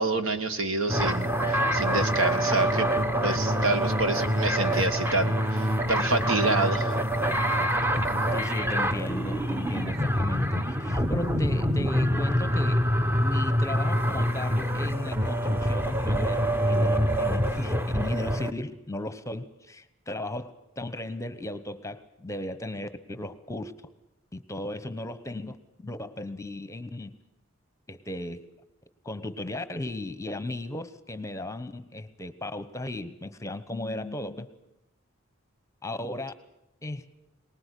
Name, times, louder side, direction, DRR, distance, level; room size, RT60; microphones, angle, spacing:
voice 1, 0.0-2.9 3.2-7.0, right 2 dB, 75° right, 8 dB, 1.9 m, -28 dB
sound 1, 0.9-18.5, equal, 10° right, 0.9 m, -26 dB
voice 2, 8.3-12.9 13.2-16.4 16.6-23.7 24.3-27.1 27.9-28.5 29.0-34.5 35.8-36.3 36.8-37.0, left 1 dB, 15° left, 12 dB, 1.0 m, -36 dB
23.5 x 19.5 x 8.4 m, 0.86 s
head